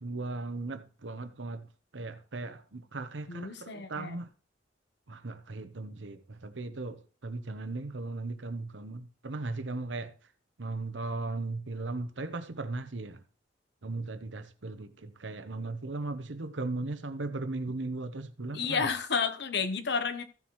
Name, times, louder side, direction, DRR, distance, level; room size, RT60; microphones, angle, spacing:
voice 1, 0.0-1.6 1.9-4.3 5.1-10.1 10.6-13.2 13.8-18.9, right 2 dB, 90° right, 1.0 m, -37 dB
voice 2, 3.3-4.2 18.5-20.2, left 5 dB, 65° left, 1.1 m, -31 dB
15.0 x 7.3 x 3.2 m
head